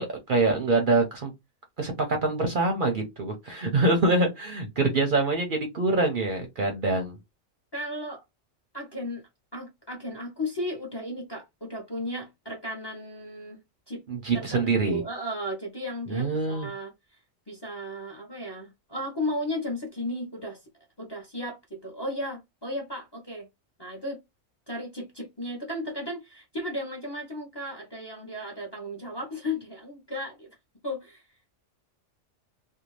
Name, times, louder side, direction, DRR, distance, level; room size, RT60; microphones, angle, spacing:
voice 1, 0.0-1.3 1.8-7.2 14.1-15.0 16.1-16.7, right 2 dB, 50° right, 0.7 m, -25 dB
voice 2, 7.7-8.2 8.7-9.2 9.5-13.6 13.9-14.0 14.3-17.2 17.5-20.6 21.0-23.5 23.8-24.2 24.7-30.5 30.8-31.3, left 1 dB, 25° left, 0.6 m, -35 dB
2.6 x 2.2 x 3.0 m
omnidirectional pair, 1.3 m